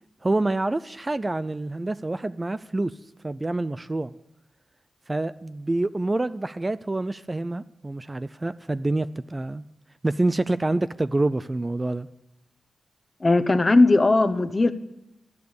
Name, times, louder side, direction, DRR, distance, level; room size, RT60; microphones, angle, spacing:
voice 1, 0.2-3.0 3.2-4.1 5.1-9.6 10.0-12.1, right 2 dB, 20° right, 14 dB, 0.4 m, -27 dB
voice 2, 13.2-14.7, left 2 dB, 30° left, 12 dB, 0.8 m, -18 dB
13.0 x 6.8 x 9.6 m, 0.86 s
wide cardioid pair, 100°, 0 cm